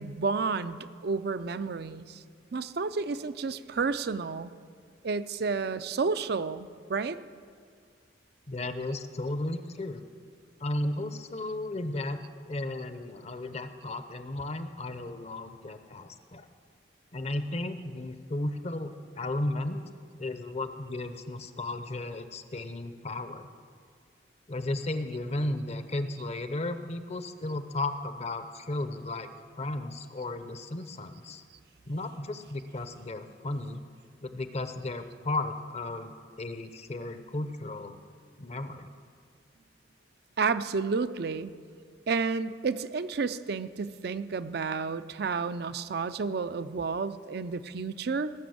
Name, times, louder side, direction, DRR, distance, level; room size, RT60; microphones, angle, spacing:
voice 1, 0.0-2.2 2.5-4.5 5.0-7.2 40.4-41.5 42.1-48.3, right 4 dB, 60° right, 12 dB, 0.5 m, -31 dB
voice 2, 8.5-10.1 10.6-12.2 12.5-16.5 17.1-19.8 20.2-23.5 24.5-29.3 29.6-31.4 31.9-33.8 34.2-38.0 38.4-38.9, left 2 dB, 35° left, 10 dB, 0.7 m, -34 dB
18.0 x 6.2 x 7.8 m, 2.1 s
head